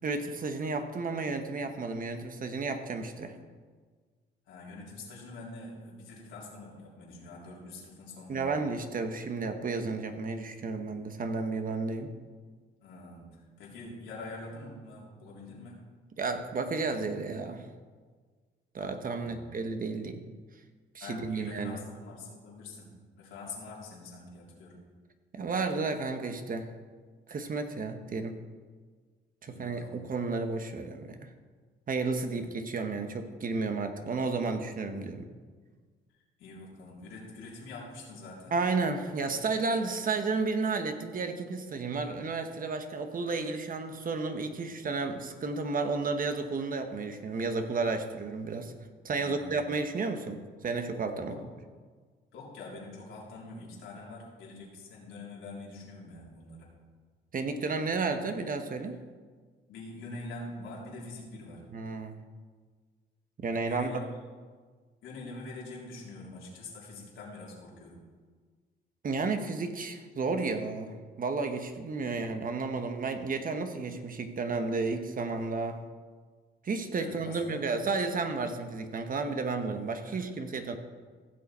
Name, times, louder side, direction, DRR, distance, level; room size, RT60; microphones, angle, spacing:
voice 1, 0.0-3.4 8.3-12.1 16.2-17.7 18.7-20.2 20.9-21.8 25.3-26.7 27.3-28.4 29.4-31.3 31.9-35.3 38.5-48.7 49.0-51.4 57.3-59.0 61.7-62.2 63.4-63.9 69.0-75.8 76.6-80.7, right 4 dB, 45° right, 7 dB, 1.1 m, -32 dB
voice 2, 4.4-8.6 12.8-15.8 19.1-19.5 21.0-24.9 29.4-30.1 32.3-32.4 36.4-38.5 49.1-49.7 51.3-51.5 52.3-56.7 59.7-61.7 63.7-64.1 65.0-68.0 72.0-72.3 77.0-77.7 80.0-80.2, left 2 dB, 85° left, -4 dB, 3.3 m, -45 dB
15.5 x 7.1 x 4.3 m, 1.5 s
cardioid pair, 90°, 20 cm